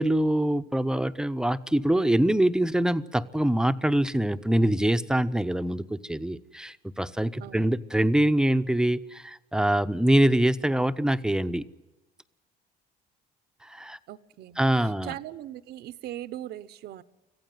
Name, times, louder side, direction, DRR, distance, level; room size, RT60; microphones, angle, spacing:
voice 1, 0.0-11.6 13.6-14.0 14.6-15.1, right 1 dB, 5° right, 10 dB, 0.8 m, -24 dB
voice 2, 14.1-17.0, right 13 dB, 75° right, 15 dB, 1.1 m, -40 dB
25.5 x 15.5 x 9.4 m, 1.1 s
cardioid pair, 110°, 17 cm